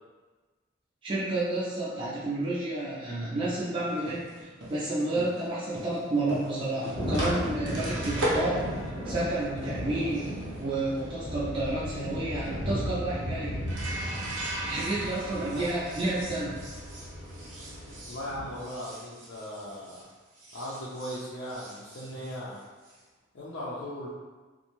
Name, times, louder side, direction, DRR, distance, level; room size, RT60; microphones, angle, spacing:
voice 1, 1.0-8.7 9.1-13.7 14.6-16.6, right 2 dB, 25° right, -9 dB, 0.4 m, -30 dB
sound 1, 3.9-20.1 20.3-23.0, right 1 dB, 75° right, 0.7 m, -39 dB
Thunder, 6.9-18.5, equal, 15° left, 0.8 m, -36 dB
voice 2, 18.0-20.1 20.5-22.6 23.3-24.1, equal, 75° left, -9 dB, 0.5 m, -38 dB
2.6 x 2.1 x 2.9 m, 1.3 s
head